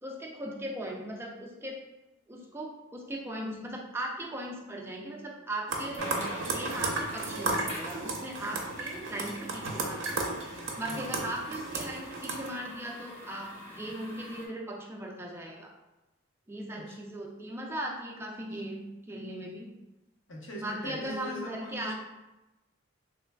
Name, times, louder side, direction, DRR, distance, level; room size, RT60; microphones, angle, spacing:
voice 1, 0.0-1.8 2.3-6.1 6.5-10.3 10.8-15.7 16.5-19.7 20.5-21.9, right 1 dB, 10° right, -1 dB, 0.4 m, -38 dB
sound 1, 5.7-12.5, right 3 dB, 70° right, 0.5 m, -34 dB
sound 2, 6.0-14.5, equal, 30° left, 0.7 m, -45 dB
voice 2, 10.7-11.2 16.8-17.0 20.3-21.9, equal, 70° left, -2 dB, 0.7 m, -41 dB
3.2 x 3.2 x 2.2 m, 1.0 s
head